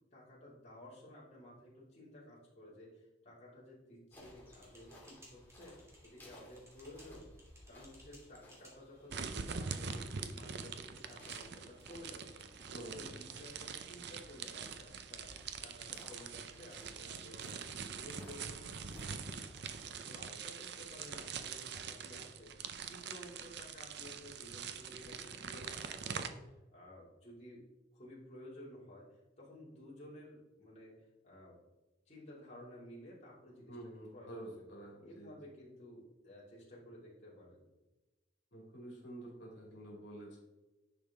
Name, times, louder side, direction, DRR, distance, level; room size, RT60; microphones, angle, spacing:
voice 1, 0.1-5.8 6.0-7.3 7.7-15.3 15.6-19.5 19.9-27.6 27.9-30.9 31.2-31.6 32.1-33.8 34.1-34.7 35.0-37.7, left 1 dB, 35° left, -7 dB, 2.5 m, -54 dB
sound 1, 4.1-19.9, left 1 dB, 10° left, 1.9 m, -61 dB
sound 2, 4.2-11.9, equal, 15° right, 1.9 m, -63 dB
sound 3, 9.1-26.3, right 6 dB, 65° right, 0.6 m, -44 dB
voice 2, 12.7-13.6 33.7-35.3 38.5-40.4, right 1 dB, 65° left, -3 dB, 2.4 m, -49 dB
10.0 x 5.5 x 3.6 m, 1.1 s
head